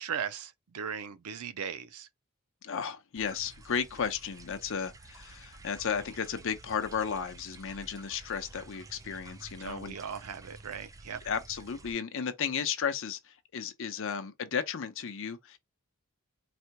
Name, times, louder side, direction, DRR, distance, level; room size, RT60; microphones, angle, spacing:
voice 1, 0.0-2.1 9.1-9.2 9.6-11.2, right 7 dB, 85° right, 0.5 m, -38 dB
voice 2, 2.6-10.0 11.3-15.6, left 7 dB, 65° left, 0.6 m, -34 dB
sound 1, 3.2-11.9, right 2 dB, 15° right, 0.3 m, -51 dB
4.1 x 2.2 x 2.8 m
head